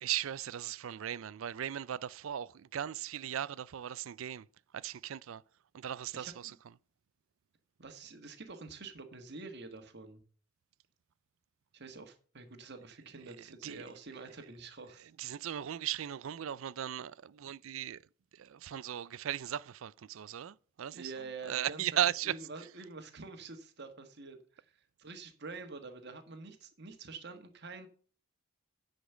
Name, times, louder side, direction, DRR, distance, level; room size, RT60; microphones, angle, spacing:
voice 1, 0.0-4.5 4.7-5.4 5.7-6.6 13.2-13.8 15.2-18.1 18.3-21.1 21.5-22.4, right 10 dB, 70° right, 0.4 m, -37 dB
voice 2, 6.1-6.5 7.8-10.2 11.7-15.1 20.9-27.9, right 4 dB, 50° right, 1.5 m, -47 dB
10.0 x 5.2 x 7.1 m
head